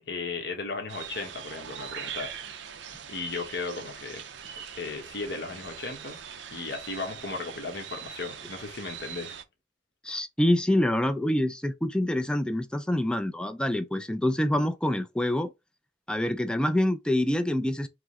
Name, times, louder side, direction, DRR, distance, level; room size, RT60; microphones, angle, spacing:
voice 1, 0.0-2.5 3.1-4.2 4.7-6.2 6.5-9.4, left 3 dB, 60° left, 1.0 m, -36 dB
sound 1, 0.9-9.4, right 8 dB, 75° right, 0.5 m, -42 dB
voice 2, 10.0-15.5 16.1-17.9, left 1 dB, 5° left, 0.3 m, -26 dB
4.8 x 2.0 x 3.5 m
head